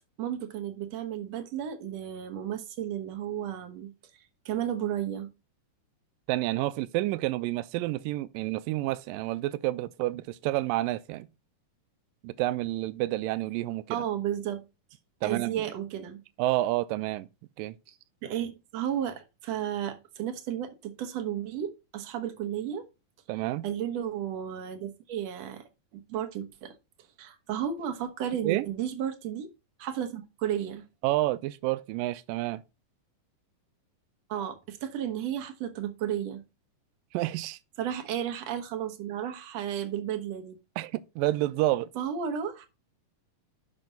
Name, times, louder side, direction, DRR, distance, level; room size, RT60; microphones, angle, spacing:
voice 1, 0.2-3.9 4.5-5.3 13.9-14.6 15.2-16.2 17.9-18.0 18.2-22.9 23.6-25.6 25.9-26.7 27.2-29.5 29.8-30.8 34.3-36.4 37.8-40.6 42.0-42.7, right 10 dB, 60° right, 1.9 m, -33 dB
voice 2, 6.3-11.3 12.2-14.0 15.2-15.7 16.4-17.3 17.6-17.7 23.3-23.7 28.4-28.7 31.0-32.6 37.1-37.6 40.8-41.9, right 17 dB, 85° right, 2.3 m, -29 dB
7.3 x 6.1 x 5.3 m
omnidirectional pair, 4.0 m